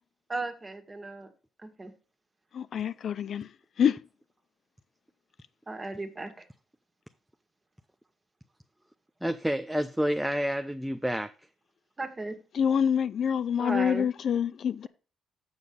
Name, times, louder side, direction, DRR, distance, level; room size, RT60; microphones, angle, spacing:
voice 1, 0.3-1.3 1.6-1.9 5.7-6.3 12.0-12.4 13.6-14.1, right 2 dB, 25° right, 1.8 m, -35 dB
voice 2, 2.5-3.5 3.8-4.0 12.5-14.9, left 8 dB, 60° left, 0.4 m, -26 dB
voice 3, 9.2-11.3, equal, 5° right, 0.5 m, -29 dB
7.2 x 6.4 x 5.4 m
cardioid pair, 90°, 0 cm